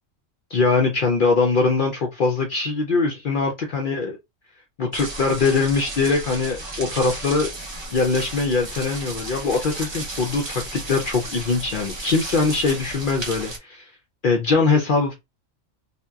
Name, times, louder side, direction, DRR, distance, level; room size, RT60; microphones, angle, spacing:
voice 1, 0.5-4.2 4.8-7.5 7.9-13.9 14.2-15.1, left 4 dB, 60° left, 0.5 m, -22 dB
sound 1, 4.9-13.6, right 2 dB, 35° right, 0.4 m, -34 dB
2.7 x 2.1 x 2.3 m
omnidirectional pair, 1.3 m